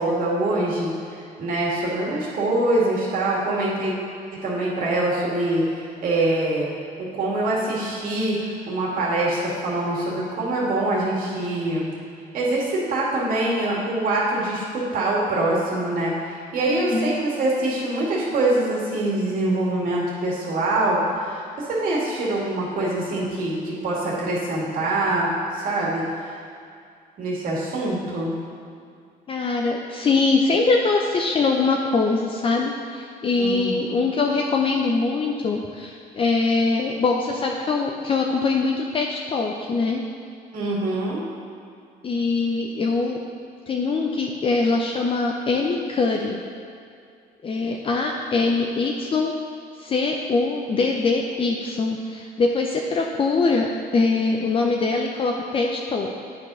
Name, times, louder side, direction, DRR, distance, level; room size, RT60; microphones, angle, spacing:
voice 1, 0.0-3.9 4.4-6.7 7.0-11.9 12.3-26.4 27.2-28.3 33.4-33.8 40.5-41.2, right 2 dB, 55° right, -5 dB, 2.2 m, -24 dB
voice 2, 16.7-17.2 29.3-40.0 42.0-43.2 43.7-46.4 47.4-49.3 49.8-56.2, left 3 dB, 30° left, 1 dB, 0.6 m, -23 dB
9.0 x 5.2 x 5.5 m, 2.4 s
cardioid pair, 110°, 17 cm